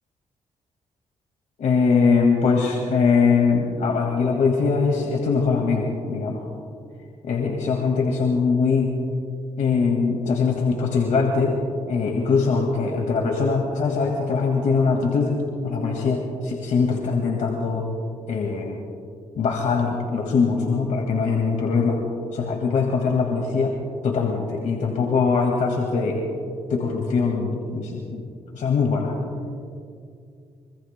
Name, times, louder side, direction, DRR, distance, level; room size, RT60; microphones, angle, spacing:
voice 1, 1.6-6.4 7.2-8.9 9.6-11.6 11.9-15.3 15.6-17.9 18.3-18.8 19.4-22.0 22.3-23.8 24.0-26.2 26.7-28.2 28.5-29.1, left 5 dB, 80° left, 1 dB, 2.0 m, -22 dB
25.0 x 25.0 x 2.2 m, 2.3 s
cardioid pair, 80°, 13 cm